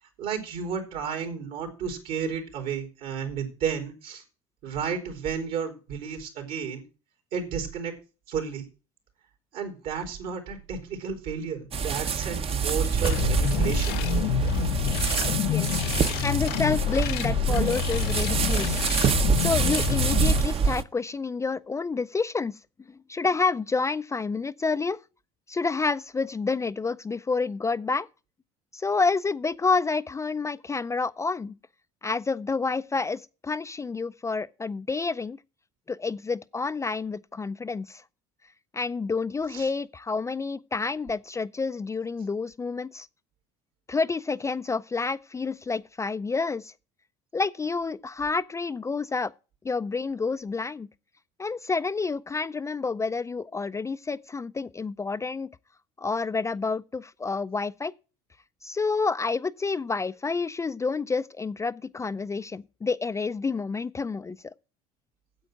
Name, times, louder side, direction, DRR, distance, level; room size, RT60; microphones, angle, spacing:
voice 1, 0.0-4.2 4.6-6.8 7.3-7.9 8.3-8.6 9.5-13.9 39.5-39.7, right 7 dB, 65° right, 3.7 m, -32 dB
sound 1, 11.7-20.8, right 6 dB, 35° right, 0.9 m, -26 dB
sound 2, 13.0-20.4, left 14 dB, 70° left, 0.6 m, -28 dB
voice 2, 15.4-18.8 19.4-22.6 22.9-25.0 25.5-28.1 28.7-31.5 32.0-35.4 35.9-38.0 38.7-43.1 43.9-46.7 47.3-49.3 49.6-50.9 51.4-55.5 56.0-57.9 58.6-64.5, left 4 dB, 20° left, 0.4 m, -29 dB
9.2 x 7.9 x 6.5 m
supercardioid pair, 90°, 16 cm